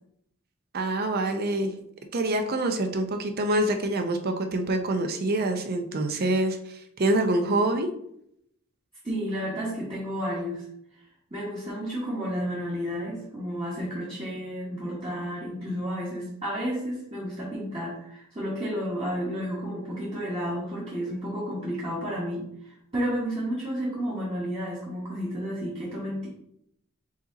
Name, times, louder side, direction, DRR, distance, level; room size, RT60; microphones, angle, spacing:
voice 1, 0.7-1.7 2.1-7.9, right 1 dB, 45° right, 6 dB, 0.5 m, -26 dB
voice 2, 9.0-10.6 10.9-11.0 11.3-26.3, equal, 25° right, -7 dB, 1.2 m, -31 dB
4.8 x 2.8 x 3.9 m, 0.75 s
head